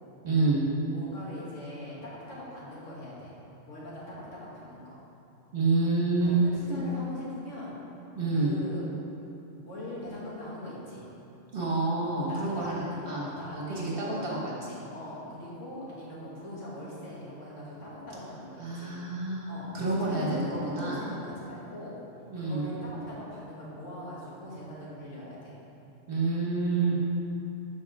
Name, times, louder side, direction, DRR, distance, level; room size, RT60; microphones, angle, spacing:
voice 1, 0.2-0.6 5.5-6.3 6.7-6.9 8.2-8.5 11.5-14.8 18.6-21.0 22.3-22.7 26.1-26.9, right 3 dB, 50° right, -5 dB, 1.7 m, -28 dB
voice 2, 0.9-2.0 2.3-3.3 3.7-5.0 6.2-7.8 8.3-8.9 9.7-11.1 12.0-14.3 14.9-19.0 19.5-19.7 20.0-22.0 22.4-25.6 26.7-26.9, left 1 dB, 90° left, -8 dB, 2.4 m, -41 dB
12.5 x 5.2 x 3.6 m, 3.0 s
omnidirectional pair, 1.2 m